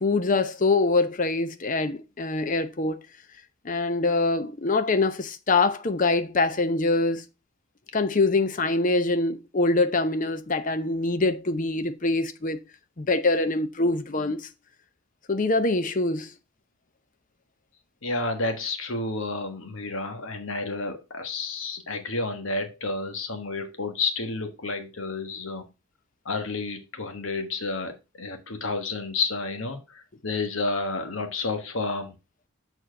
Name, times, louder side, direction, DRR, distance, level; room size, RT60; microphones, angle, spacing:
voice 1, 0.0-3.0 3.6-7.2 7.9-12.6 13.0-14.5 15.3-16.3, left 3 dB, 40° left, 0.7 m, -24 dB
voice 2, 18.0-25.6 26.2-32.1, left 3 dB, 75° left, 1.4 m, -30 dB
6.7 x 4.4 x 5.1 m
head